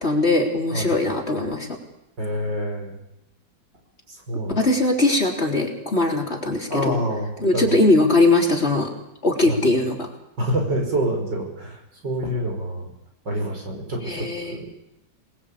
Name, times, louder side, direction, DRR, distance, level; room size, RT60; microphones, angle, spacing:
voice 1, 0.0-1.8 4.6-7.0 7.4-8.9 9.2-10.1 14.1-14.6, left 2 dB, 30° left, 1 dB, 4.0 m, -20 dB
voice 2, 2.2-3.0 4.1-4.6 6.7-7.8 9.5-9.6 10.4-12.9 13.2-14.7, right 1 dB, 65° right, 2 dB, 6.4 m, -27 dB
27.5 x 20.5 x 8.7 m, 0.87 s
omnidirectional pair, 2.1 m